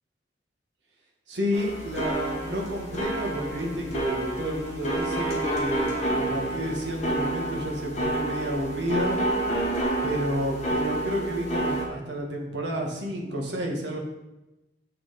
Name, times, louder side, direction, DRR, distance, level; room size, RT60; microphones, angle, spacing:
voice 1, 1.3-9.2 10.0-14.0, equal, 80° right, 0 dB, 1.7 m, -30 dB
sound 1, 1.5-11.9, right 1 dB, 40° left, 1.9 m, -29 dB
7.5 x 6.1 x 4.2 m, 0.98 s
head